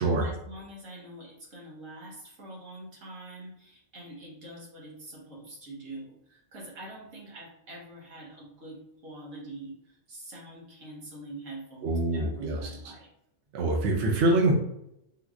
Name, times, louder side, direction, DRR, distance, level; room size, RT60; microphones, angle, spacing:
voice 1, 0.0-13.1, right 1 dB, 90° right, -3 dB, 1.4 m, -45 dB
voice 2, 11.8-12.6 13.5-14.5, right 2 dB, 65° right, -1 dB, 0.9 m, -24 dB
3.5 x 2.8 x 2.4 m, 0.81 s
omnidirectional pair, 1.3 m